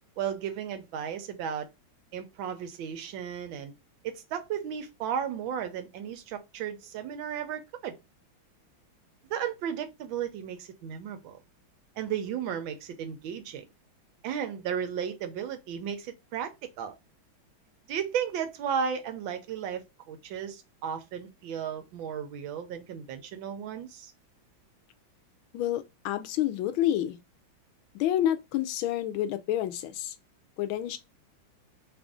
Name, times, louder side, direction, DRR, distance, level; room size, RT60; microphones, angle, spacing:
voice 1, 0.2-1.7 2.1-3.7 4.0-8.0 9.3-11.4 12.0-13.7 14.2-16.9 17.9-24.1, right 8 dB, 75° right, 1.4 m, -34 dB
voice 2, 25.5-27.2 27.9-30.2 30.6-31.0, left 12 dB, 85° left, 1.4 m, -29 dB
3.5 x 2.5 x 3.5 m
omnidirectional pair, 2.2 m